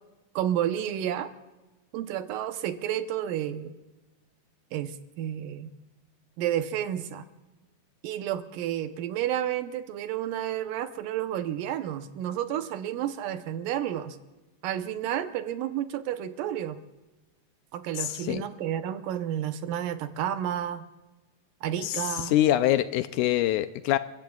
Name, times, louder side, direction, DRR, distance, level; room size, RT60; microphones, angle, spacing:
voice 1, 0.4-1.3 1.9-3.7 4.7-5.7 6.4-7.2 8.0-14.2 14.6-16.8 17.7-20.9 21.6-22.4, right 11 dB, 85° right, 9 dB, 2.5 m, -31 dB
voice 2, 18.0-18.4 21.8-24.0, left 13 dB, 80° left, 11 dB, 1.9 m, -25 dB
30.0 x 15.5 x 2.3 m, 1.1 s
omnidirectional pair, 3.8 m